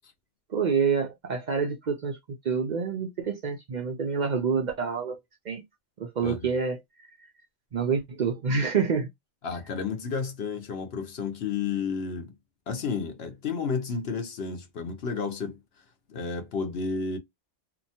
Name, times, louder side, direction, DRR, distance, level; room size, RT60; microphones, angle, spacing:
voice 1, 0.5-2.2 2.4-5.2 5.5-5.6 6.0-7.1 7.7-9.1, right 5 dB, 55° right, 0.5 m, -27 dB
voice 2, 9.4-12.3 12.7-15.6 16.1-17.2, left 5 dB, 55° left, 0.9 m, -31 dB
2.8 x 2.1 x 2.7 m
omnidirectional pair, 1.3 m